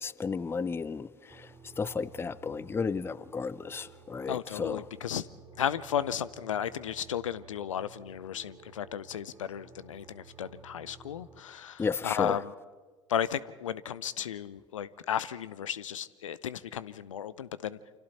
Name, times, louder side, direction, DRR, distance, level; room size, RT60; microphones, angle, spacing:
voice 1, 0.0-4.8 11.8-12.4, left 5 dB, 15° left, 0.6 m, -33 dB
sound 1, 1.3-11.4, right 5 dB, 15° right, 2.9 m, -54 dB
voice 2, 4.3-5.3 5.6-12.5 13.1-17.8, left 9 dB, 80° left, 0.7 m, -34 dB
28.5 x 26.0 x 4.2 m
figure-of-eight pair, 75°, 16 cm